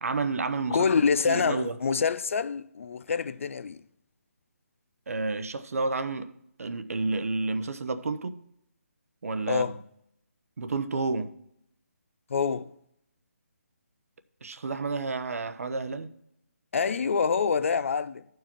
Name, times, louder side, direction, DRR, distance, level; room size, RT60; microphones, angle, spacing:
voice 1, 0.0-1.8 5.1-6.3 6.6-8.4 9.2-9.8 10.6-11.3 14.4-16.1, right 3 dB, 70° right, 0.8 m, -30 dB
voice 2, 0.7-3.8 9.5-9.8 12.3-12.7 16.7-18.2, left 6 dB, 60° left, 0.5 m, -26 dB
14.0 x 4.7 x 4.4 m
hypercardioid pair, 160°, 8 cm